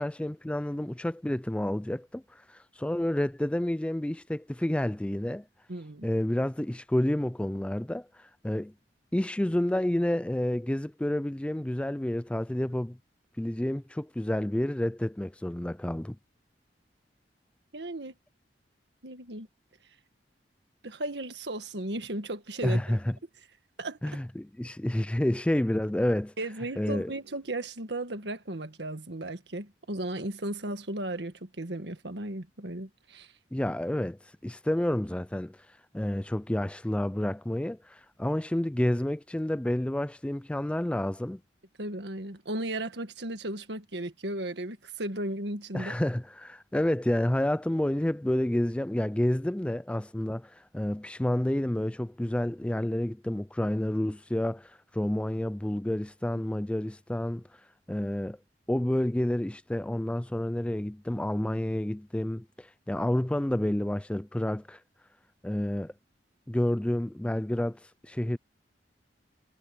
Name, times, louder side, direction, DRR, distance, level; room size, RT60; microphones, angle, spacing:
voice 1, 0.0-5.4 6.0-8.7 9.1-13.0 13.4-16.2 22.6-23.1 24.0-26.3 26.8-27.1 33.5-35.6 35.9-41.4 45.7-57.4 57.9-58.4 58.7-64.8 65.4-65.9 66.5-68.4, left 1 dB, 5° left, 0.3 m, -29 dB
voice 2, 5.7-6.2 17.7-18.1 19.0-19.5 20.8-23.0 23.8-24.0 26.4-33.3 41.8-46.0, right 1 dB, 70° right, 1.8 m, -35 dB
head